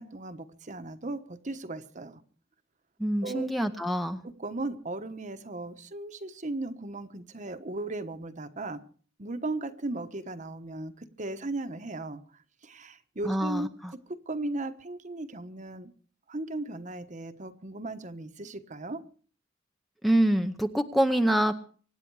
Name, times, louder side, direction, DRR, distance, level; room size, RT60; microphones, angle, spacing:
voice 1, 0.0-2.2 3.2-3.5 4.2-8.8 9.2-12.2 12.6-15.9 16.3-19.0, right 2 dB, 40° right, 1.1 m, -37 dB
voice 2, 3.0-4.2 13.2-13.7 20.0-21.5, right 1 dB, ahead, 0.8 m, -25 dB
25.5 x 9.8 x 4.7 m
head